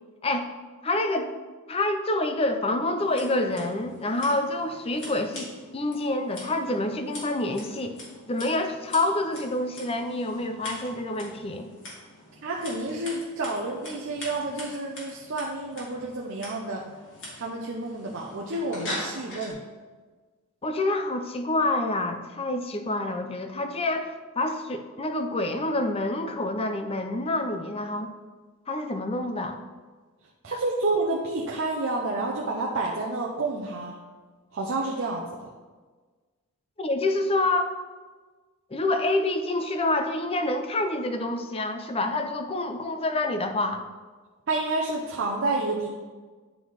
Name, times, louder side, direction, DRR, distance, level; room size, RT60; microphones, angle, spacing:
voice 1, 0.8-1.3 1.7-8.0 8.3-11.7 20.6-28.1 28.7-29.6 36.8-37.7 38.7-43.8, left 2 dB, 25° left, 6 dB, 0.5 m, -27 dB
Scissors, 3.0-19.5, left 1 dB, 55° left, 2.6 m, -43 dB
voice 2, 12.4-16.9 17.3-19.6 30.4-33.9 34.5-35.5 44.5-45.9, right 2 dB, 60° right, -2 dB, 0.7 m, -29 dB
10.0 x 3.9 x 4.7 m, 1.4 s
head